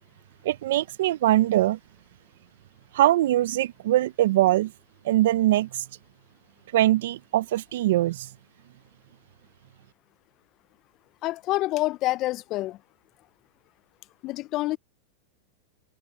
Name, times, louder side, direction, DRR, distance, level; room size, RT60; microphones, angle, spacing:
voice 1, 0.4-1.8 2.9-4.7 5.0-5.8 6.7-8.3, right 14 dB, 75° right, 0.5 m, -22 dB
voice 2, 11.2-12.8 14.2-14.8, left 17 dB, 40° left, 0.3 m, -27 dB
supercardioid pair, 140°, 0 cm